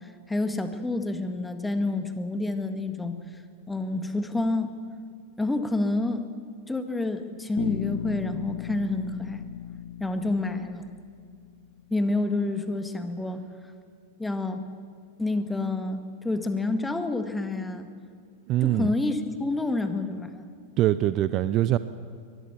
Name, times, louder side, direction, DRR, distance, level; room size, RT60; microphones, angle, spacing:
voice 1, 0.0-3.2 3.7-4.7 5.4-6.2 6.7-9.4 10.0-10.8 11.9-13.4 14.2-14.6 15.2-17.9 18.6-20.4, left 2 dB, 10° left, 8 dB, 1.8 m, -28 dB
Bass guitar, 7.6-11.6, left 11 dB, 60° left, 0.5 m, -36 dB
voice 2, 18.5-18.9 20.8-21.8, right 14 dB, 35° right, 14 dB, 0.6 m, -23 dB
23.0 x 20.0 x 7.4 m, 2.2 s
figure-of-eight pair, 90°, 0 cm